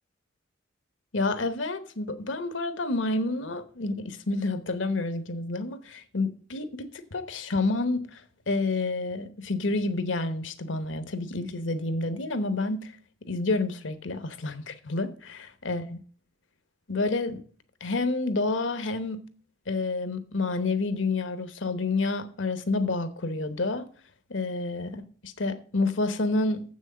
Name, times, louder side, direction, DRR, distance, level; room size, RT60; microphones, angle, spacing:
voice 1, 1.1-8.2 8.5-12.9 13.3-15.8 16.9-17.4 17.8-19.2 19.7-23.8 24.3-26.6, left 3 dB, 80° left, 1.0 m, -29 dB
7.6 x 6.3 x 7.4 m
head